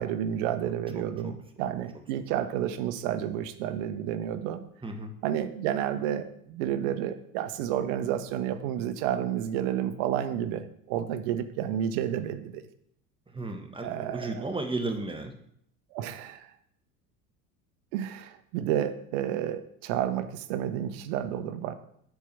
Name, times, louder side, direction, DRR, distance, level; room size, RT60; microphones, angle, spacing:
voice 1, 0.0-4.6 5.2-12.6 13.8-14.4 15.9-16.5 17.9-21.7, right 10 dB, 55° right, 11 dB, 0.9 m, -30 dB
voice 2, 0.6-1.3 4.8-5.1 13.3-15.3, right 2 dB, 10° right, 5 dB, 1.3 m, -35 dB
7.5 x 4.6 x 6.8 m, 0.70 s
figure-of-eight pair, 70°, 46 cm